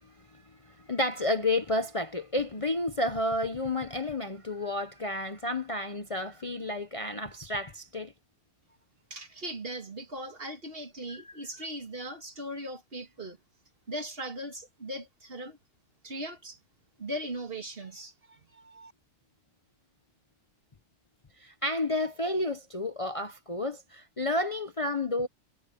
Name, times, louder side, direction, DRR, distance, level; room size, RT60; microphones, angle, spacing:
voice 1, 0.3-8.1 11.1-11.4 21.4-25.3, left 2 dB, 30° left, 0.9 m, -31 dB
voice 2, 9.1-13.4 13.9-15.6 16.0-16.6 17.0-18.9, right 1 dB, 45° right, 2.5 m, -39 dB
omnidirectional pair, 1.3 m